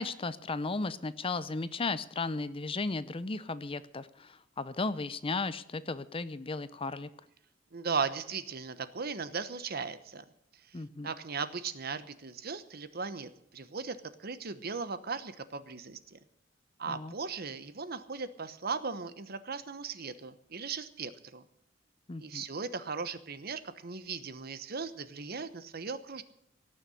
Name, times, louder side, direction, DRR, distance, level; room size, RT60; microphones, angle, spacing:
voice 1, 0.0-7.1 10.7-11.1 16.9-17.1 22.1-22.4, left 3 dB, 30° left, 15 dB, 0.6 m, -35 dB
voice 2, 7.7-10.2 10.7-10.8 11.0-16.2 16.8-21.4 22.2-26.2, right 5 dB, 55° right, 13 dB, 1.0 m, -37 dB
17.5 x 6.9 x 9.8 m, 0.76 s
head